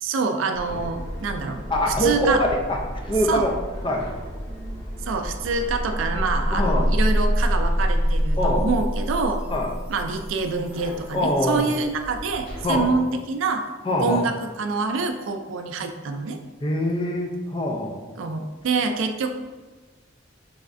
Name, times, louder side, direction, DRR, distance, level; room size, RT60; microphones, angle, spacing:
voice 1, 0.0-1.6 2.0-2.4 3.3-3.5 5.0-9.4 9.9-13.6 14.0-16.4 18.2-19.3, right 4 dB, 80° right, 6 dB, 0.3 m, -26 dB
sound 1, 0.5-13.0, equal, 55° left, 1.3 m, -36 dB
voice 2, 1.7-2.8 3.0-3.5 3.8-4.0 6.5-6.8 8.4-8.7 9.5-9.7 11.1-11.7 12.6-12.9 13.9-14.2 16.6-18.0, left 1 dB, 25° left, 1 dB, 0.4 m, -23 dB
sound 2, 4.6-4.7 5.0-11.8, equal, 30° right, 0.8 m, -25 dB
3.5 x 3.1 x 2.5 m, 1.3 s
head